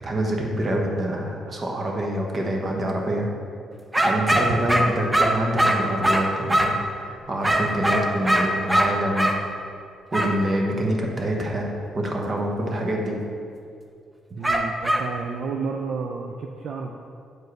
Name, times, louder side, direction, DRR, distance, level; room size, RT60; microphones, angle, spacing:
voice 1, 0.0-3.3 4.0-9.3 10.1-13.2, right 1 dB, 40° right, 0 dB, 1.0 m, -26 dB
sound 1, 3.9-6.8 7.4-9.4 10.1-10.4 14.4-15.1, right 1 dB, 10° right, 0.6 m, -21 dB
voice 2, 14.4-16.9, right 5 dB, 65° right, 2 dB, 0.4 m, -31 dB
7.9 x 4.6 x 3.2 m, 2.4 s
cardioid pair, 90°, 0 cm